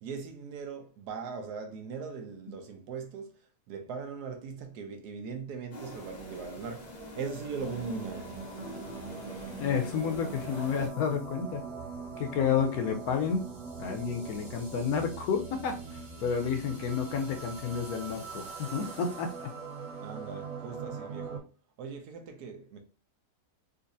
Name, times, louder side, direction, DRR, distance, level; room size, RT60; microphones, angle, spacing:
voice 1, 0.0-3.3 3.7-8.3 20.0-21.4 21.8-22.8, right 5 dB, 70° right, 1.2 m, -40 dB
sound 1, 5.7-10.9, equal, 50° left, 0.5 m, -45 dB
sound 2, 7.6-21.4, right 4 dB, 55° right, 1.3 m, -42 dB
voice 2, 9.6-11.6 12.2-13.4 13.8-19.5, left 6 dB, 70° left, 1.0 m, -30 dB
3.9 x 2.4 x 2.6 m
omnidirectional pair, 1.8 m